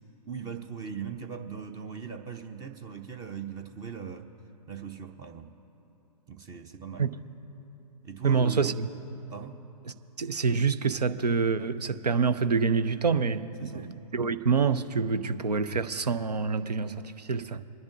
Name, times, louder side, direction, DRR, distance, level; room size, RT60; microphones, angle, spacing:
voice 1, 0.3-4.3 4.7-5.5 6.3-7.1 8.0-8.7 9.3-9.6 13.6-13.9, right 6 dB, 20° right, 0.6 m, -39 dB
voice 2, 8.2-8.9 10.2-17.6, right 5 dB, 80° right, 0.7 m, -26 dB
25.0 x 10.5 x 2.6 m
figure-of-eight pair, 120°, 20 cm